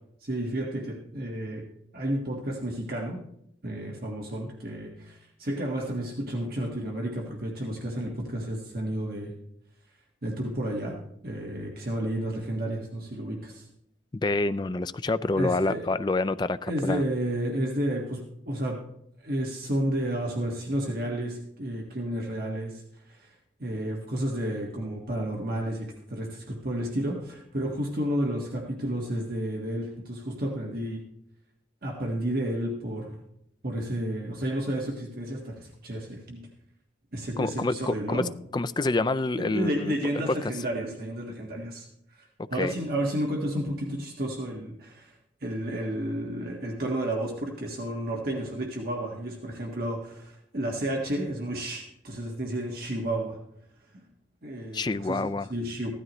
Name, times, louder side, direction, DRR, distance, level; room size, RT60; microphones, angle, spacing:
voice 1, 0.2-1.7 1.9-3.2 3.6-9.3 10.2-11.0 11.2-13.7 15.4-15.8 16.7-18.8 19.2-23.4 23.6-31.0 31.8-33.2 33.6-36.5 37.1-38.3 39.4-41.9 42.1-42.2 42.5-45.2 45.4-53.4 53.9-54.0 54.4-55.9, right 1 dB, 50° right, 0 dB, 1.6 m, -31 dB
voice 2, 14.1-17.0 37.4-39.9 40.3-40.4 42.5-42.7 54.7-55.5, left 2 dB, 20° left, 13 dB, 0.3 m, -27 dB
15.5 x 12.5 x 3.1 m, 0.75 s
head